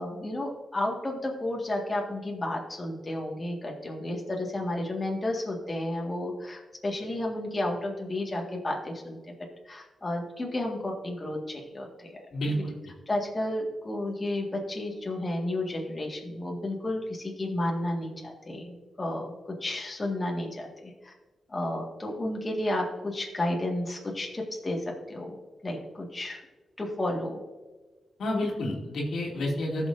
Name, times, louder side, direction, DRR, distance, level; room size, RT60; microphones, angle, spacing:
voice 1, 0.0-9.2 9.6-12.2 13.1-19.3 19.6-21.1 21.5-25.4 25.6-26.4 26.8-27.4, left 1 dB, 30° left, 0 dB, 1.8 m, -32 dB
voice 2, 12.3-12.8 28.2-29.9, left 1 dB, 80° left, -2 dB, 2.4 m, -29 dB
15.0 x 6.2 x 2.7 m, 1.3 s
cardioid pair, 65°, 0 cm